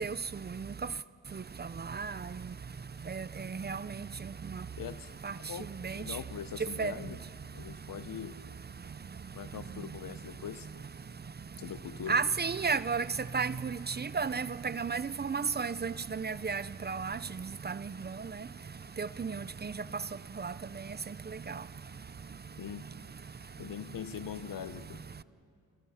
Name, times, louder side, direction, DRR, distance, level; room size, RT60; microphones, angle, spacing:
voice 1, 0.0-4.8 5.2-6.2 6.6-8.2 8.6-10.4 11.0-11.7 12.1-23.7 25.1-25.2, right 5 dB, 30° right, 16 dB, 0.5 m, -36 dB
voice 2, 4.8-5.1 5.5-5.7 5.9-7.2 7.5-8.4 9.3-10.7 11.6-12.2 22.6-22.9 23.6-25.0, left 9 dB, 75° left, 13 dB, 1.0 m, -42 dB
28.0 x 26.0 x 5.7 m, 2.4 s
cardioid pair, 90°, 34 cm